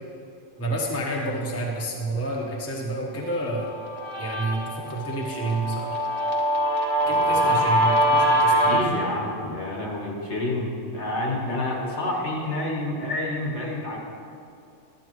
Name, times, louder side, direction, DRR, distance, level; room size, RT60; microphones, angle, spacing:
voice 1, 0.6-3.7 4.2-6.0 7.1-8.9, right 2 dB, 15° left, -2 dB, 0.9 m, -29 dB
Guitar, 3.3-8.9, right 1 dB, 30° right, 1.3 m, -23 dB
voice 2, 7.0-7.6 8.5-14.0, left 1 dB, 60° left, -2 dB, 1.8 m, -29 dB
12.0 x 9.0 x 3.1 m, 2.5 s
omnidirectional pair, 1.4 m